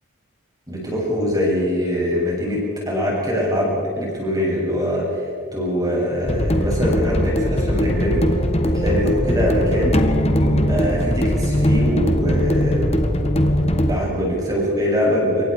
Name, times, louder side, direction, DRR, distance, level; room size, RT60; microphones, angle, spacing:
voice 1, 0.7-5.2 5.5-8.3 8.6-10.0 10.4-12.9 13.6-15.4, equal, 20° right, -3 dB, 7.8 m, -23 dB
sound 1, 6.2-14.0, equal, 30° left, 1.6 m, -20 dB
27.5 x 23.5 x 4.9 m, 2.2 s
head